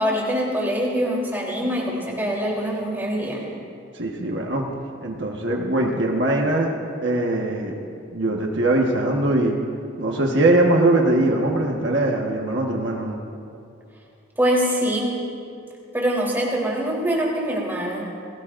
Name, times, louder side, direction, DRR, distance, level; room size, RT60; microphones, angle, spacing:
voice 1, 0.0-3.4 14.4-15.1 15.9-18.1, equal, 10° right, -4 dB, 3.4 m, -24 dB
voice 2, 3.9-4.6 5.0-6.7 7.0-7.7 8.1-9.6 10.0-13.2, right 2 dB, 65° right, 0 dB, 1.4 m, -21 dB
29.0 x 18.0 x 2.6 m, 2.5 s
head